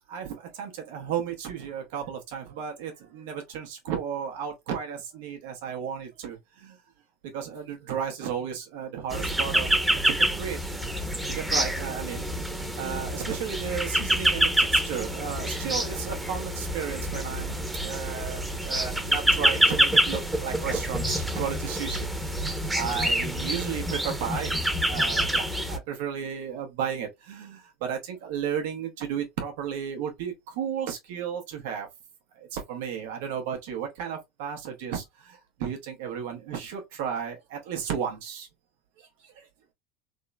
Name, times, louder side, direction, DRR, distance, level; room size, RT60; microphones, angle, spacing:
voice 1, 0.0-6.8 7.3-10.6 11.0-12.3 12.6-31.9 32.3-38.5 39.0-39.5, right 8 dB, 75° right, 0.8 m, -34 dB
sound 1, 9.1-25.8, right 1 dB, 10° right, 0.7 m, -27 dB
3.5 x 2.1 x 2.2 m
hypercardioid pair, 90°, 0 cm